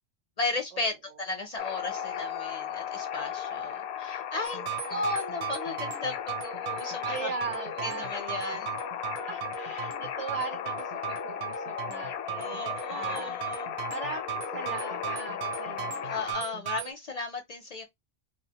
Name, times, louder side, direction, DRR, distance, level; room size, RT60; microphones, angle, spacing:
voice 1, 0.4-4.6 4.9-7.3 7.8-8.8 12.4-13.7 16.0-17.8, left 3 dB, 50° left, 0.5 m, -35 dB
sound 1, 1.6-16.3, left 9 dB, 90° left, 0.8 m, -36 dB
voice 2, 4.3-4.7 7.0-8.9 9.1-13.4 13.9-16.4, right 4 dB, 50° right, 0.5 m, -39 dB
sound 2, 4.4-16.9, right 13 dB, 90° right, 0.8 m, -38 dB
2.6 x 2.0 x 2.7 m
omnidirectional pair, 1.0 m